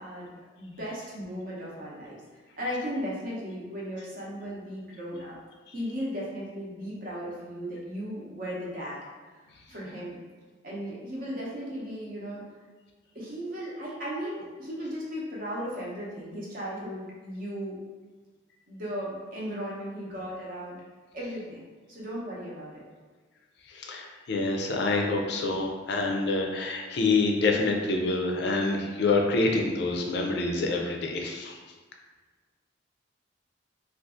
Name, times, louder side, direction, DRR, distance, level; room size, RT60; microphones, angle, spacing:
voice 1, 0.0-2.2 2.6-5.4 5.7-9.0 9.3-9.4 9.7-10.2 10.6-12.4 13.1-17.8 18.7-20.8 21.1-21.6 21.9-22.8, equal, 45° right, -5 dB, 0.8 m, -36 dB
voice 2, 23.7-31.6, left 3 dB, 55° left, 1 dB, 0.4 m, -27 dB
2.6 x 2.4 x 3.6 m, 1.3 s
head